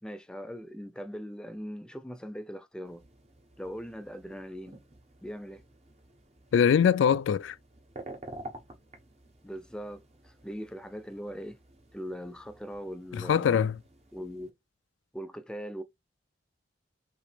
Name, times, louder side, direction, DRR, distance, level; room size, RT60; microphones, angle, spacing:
voice 1, 0.0-3.0 3.6-4.8 5.2-5.6 9.4-11.6 11.9-13.6 14.1-14.5 15.1-15.8, equal, 5° left, 0.4 m, -40 dB
sound 1, 2.8-14.5, right 1 dB, 35° right, 1.1 m, -51 dB
voice 2, 6.5-7.6 13.1-13.7, left 7 dB, 80° left, 0.3 m, -23 dB
4.9 x 3.0 x 3.3 m
head